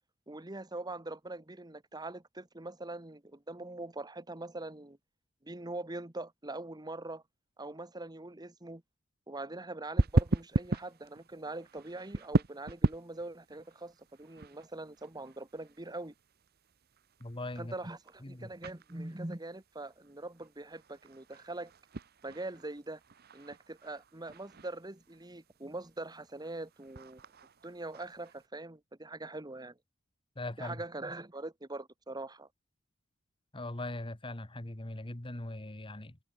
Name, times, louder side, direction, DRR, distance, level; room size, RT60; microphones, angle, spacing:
voice 1, 0.3-5.0 5.4-7.2 7.6-8.8 9.3-16.1 17.6-21.7 22.2-23.0 23.3-27.2 27.6-29.8 30.6-32.5, right 2 dB, 20° right, 1.5 m, -43 dB
sound 1, 10.0-28.5, right 2 dB, 50° right, 1.0 m, -37 dB
voice 2, 17.2-17.7 18.2-18.5 30.3-30.8 33.5-36.2, left 2 dB, 25° left, 1.5 m, -40 dB
head